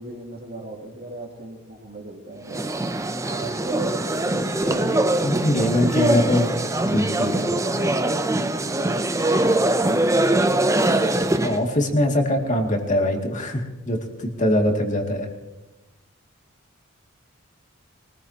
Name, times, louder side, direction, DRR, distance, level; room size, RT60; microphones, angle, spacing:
voice 1, 0.0-2.7 3.3-6.0 7.3-10.7, right 2 dB, 45° right, 0 dB, 2.9 m, -37 dB
sound 1, 2.5-11.6, right 1 dB, 15° right, 0.6 m, -22 dB
voice 2, 5.2-6.6 6.9-7.5 11.4-15.3, left 1 dB, 35° left, 2 dB, 2.4 m, -23 dB
23.5 x 19.5 x 2.9 m, 1.0 s
head